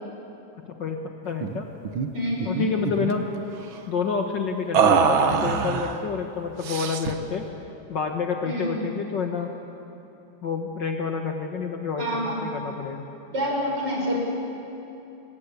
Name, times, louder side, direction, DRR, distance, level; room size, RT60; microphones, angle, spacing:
voice 1, 0.7-1.7 2.5-3.3 3.9-7.4 7.9-9.5 10.4-13.0, left 5 dB, 60° left, 3 dB, 2.1 m, -28 dB
sound 1, 1.4-1.6 1.8-2.1 2.4-3.2 4.7-6.0 6.6-7.2, right 6 dB, 70° right, 2.0 m, -23 dB
voice 2, 2.1-2.8 8.4-8.7 12.0-12.4 13.3-14.2, equal, 55° right, -2 dB, 6.4 m, -27 dB
27.0 x 24.5 x 8.4 m, 2.8 s
omnidirectional pair, 2.3 m